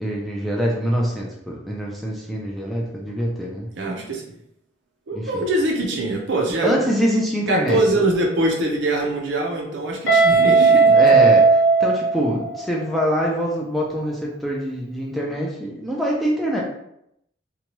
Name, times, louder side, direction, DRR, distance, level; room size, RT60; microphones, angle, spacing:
voice 1, 0.0-3.7 5.1-5.5 6.6-8.0 10.9-16.6, equal, ahead, -3 dB, 0.3 m, -24 dB
voice 2, 3.7-4.2 5.1-6.9 7.5-10.9, right 1 dB, 65° right, 1 dB, 0.6 m, -23 dB
Guitar, 10.1-12.9, right 4 dB, 65° left, 0.9 m, -15 dB
2.9 x 2.2 x 2.9 m, 0.78 s
head